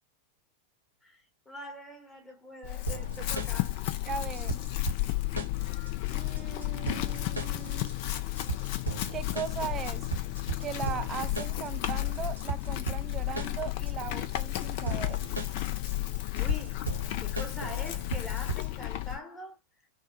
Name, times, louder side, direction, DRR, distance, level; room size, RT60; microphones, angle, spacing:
voice 1, 1.0-3.8 16.3-16.8 17.2-19.6, left 1 dB, 15° left, 1.1 m, -43 dB
Chewing mastication / Livestock farm animals working animals, 2.6-19.2, left 17 dB, 45° left, 0.4 m, -33 dB
sound 1, 2.9-18.9, right 3 dB, 85° right, 0.8 m, -38 dB
voice 2, 4.0-4.6 6.1-7.9 9.1-10.1 10.6-15.2, right 8 dB, 25° right, 0.4 m, -38 dB
3.3 x 2.1 x 2.7 m
figure-of-eight pair, 90°, 0 cm